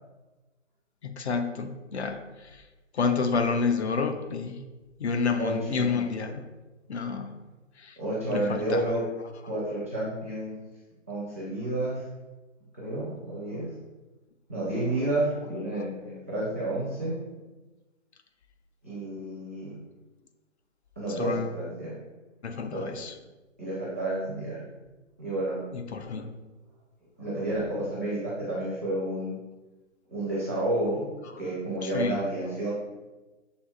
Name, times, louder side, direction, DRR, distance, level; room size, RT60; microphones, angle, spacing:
voice 1, 1.0-2.6 2.9-4.6 5.0-6.5 6.9-7.4 7.8-8.0 8.3-9.0 15.7-15.8 21.1-21.5 22.4-23.2 25.7-26.3 31.2-31.4 31.8-32.2, left 5 dB, 60° left, 7 dB, 0.5 m, -29 dB
voice 2, 5.4-5.9 8.0-9.0 9.5-10.6 11.1-12.0 12.7-13.7 14.5-17.1 18.8-19.7 21.0-21.9 22.7-22.8 23.6-24.6 25.2-25.6 27.2-29.3 30.1-31.1 31.4-32.7, right 1 dB, 10° right, -9 dB, 0.4 m, -30 dB
6.8 x 2.6 x 2.3 m, 1.2 s
hypercardioid pair, 155°, 38 cm